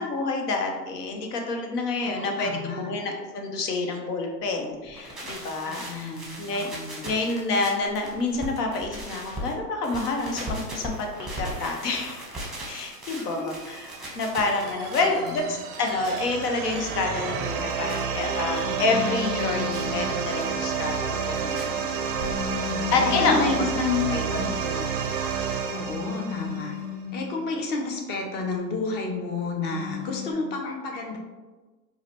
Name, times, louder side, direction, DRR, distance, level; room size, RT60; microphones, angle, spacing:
voice 1, 0.0-6.7 7.0-12.2 12.7-13.9 14.1-21.7 22.9-23.6 24.1-24.9 30.6-30.7, left 3 dB, 75° left, 3 dB, 0.9 m, -28 dB
voice 2, 2.0-3.0 5.6-7.1 13.1-13.5 14.0-14.3 14.9-15.6 22.6-24.6 25.7-26.7 27.1-31.2, left 4 dB, 25° left, 1 dB, 0.4 m, -31 dB
sound 1, 4.8-9.5 9.8-18.6 19.0-19.8 20.4-20.5 20.9-21.6 21.9-22.7 23.0-23.1 23.3-23.4 23.6-23.7, right 1 dB, ahead, 0.8 m, -38 dB
sound 2, 13.1-26.9, right 6 dB, 35° right, 0.4 m, -30 dB
sound 3, 18.6-20.0 22.1-23.6 25.7-27.2 29.7-30.3, left 9 dB, 50° left, 1.2 m, -35 dB
4.8 x 2.1 x 2.8 m, 1.2 s
hypercardioid pair, 115°, 48 cm